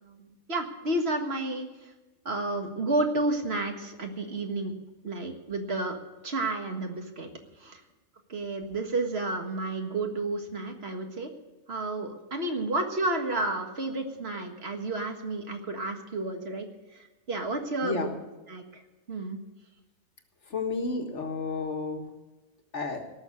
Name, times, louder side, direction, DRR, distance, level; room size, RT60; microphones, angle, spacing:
voice 1, 0.0-1.9 2.3-4.7 5.0-6.0 6.2-7.3 7.6-7.8 8.3-11.3 11.7-18.1 18.5-18.8 19.1-19.4, right 2 dB, 50° right, 4 dB, 1.9 m, -31 dB
voice 2, 17.8-18.2 20.5-22.1 22.7-23.0, left 4 dB, 60° left, 4 dB, 1.8 m, -31 dB
18.0 x 6.8 x 9.6 m, 1.1 s
omnidirectional pair, 1.4 m